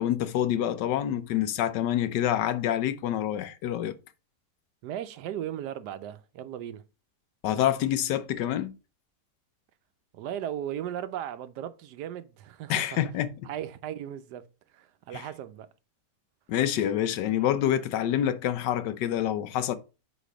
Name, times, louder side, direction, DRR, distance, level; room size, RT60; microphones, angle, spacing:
voice 1, 0.0-3.9 7.4-8.7 12.7-13.3 15.1-15.2 16.5-19.7, left 11 dB, 80° left, 1.3 m, -27 dB
voice 2, 4.8-6.8 10.1-13.0 13.4-14.5 14.7-15.7, right 10 dB, 75° right, 1.1 m, -36 dB
5.1 x 4.2 x 4.9 m
omnidirectional pair, 1.9 m